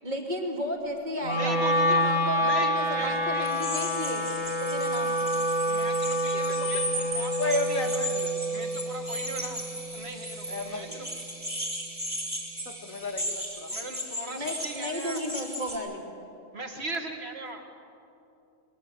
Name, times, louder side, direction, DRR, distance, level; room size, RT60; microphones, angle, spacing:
voice 1, 0.0-4.2 4.6-5.3 14.3-16.1, equal, 35° right, 0 dB, 3.0 m, -34 dB
Wind instrument woodwind instrument, 1.2-11.4, equal, 35° left, 2.9 m, -28 dB
voice 2, 1.3-2.0 2.4-3.5 5.6-7.8 8.5-9.6 9.9-11.1 13.7-15.2 16.5-17.6, right 2 dB, 50° right, 4 dB, 2.2 m, -38 dB
sound 1, 3.4-15.8, equal, 10° right, 3.7 m, -36 dB
voice 3, 7.1-8.3 10.5-11.1 12.7-13.7, left 2 dB, 85° left, 4 dB, 2.3 m, -33 dB
22.5 x 21.5 x 8.1 m, 2.7 s
omnidirectional pair, 1.4 m